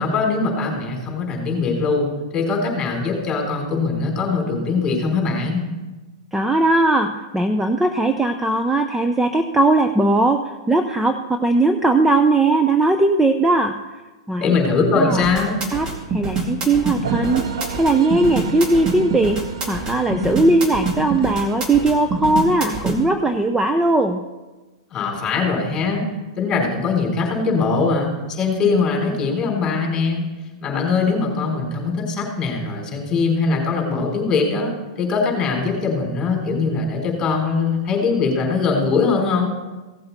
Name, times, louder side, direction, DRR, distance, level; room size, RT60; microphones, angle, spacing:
voice 1, 0.0-5.7 14.4-15.6 24.9-26.0 26.4-30.2 30.6-34.7 35.0-39.6, left 4 dB, 25° left, 0 dB, 3.8 m, -21 dB
voice 2, 6.3-10.4 10.7-13.8 14.3-14.5 14.9-15.2 15.7-15.9 16.1-17.4 17.8-19.4 19.7-24.2, right 2 dB, 10° right, 6 dB, 0.6 m, -18 dB
sound 1, 15.1-23.0, right 3 dB, 30° right, 2.2 m, -25 dB
sound 2, 17.0-23.0, right 8 dB, 75° right, 0.8 m, -33 dB
16.5 x 7.7 x 4.1 m, 1.2 s
hypercardioid pair, 125°, 3 cm